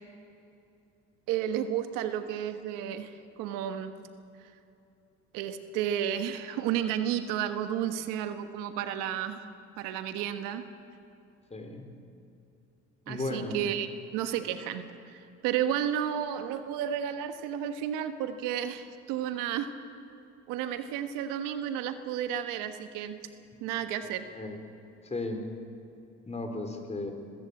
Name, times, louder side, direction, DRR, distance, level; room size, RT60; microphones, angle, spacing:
voice 1, 1.3-3.9 5.3-9.5 9.8-10.6 13.1-19.7 20.5-23.2 23.6-24.3, right 10 dB, 80° right, 9 dB, 1.4 m, -32 dB
voice 2, 11.5-11.9 13.1-13.6 24.3-24.6 25.0-25.4 26.3-27.1, left 2 dB, 20° left, 5 dB, 3.9 m, -35 dB
22.0 x 15.0 x 8.5 m, 2.7 s
supercardioid pair, 80°, 32 cm